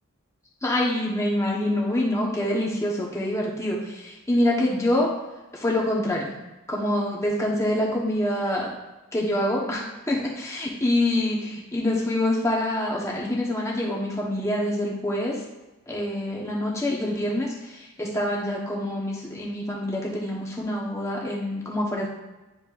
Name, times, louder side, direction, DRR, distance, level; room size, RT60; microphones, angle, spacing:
voice 1, 0.6-5.1 5.5-6.3 6.7-8.7 9.1-11.4 11.7-15.4 15.9-22.1, left 1 dB, 15° left, -3 dB, 1.1 m, -26 dB
9.9 x 4.2 x 2.5 m, 1.1 s
head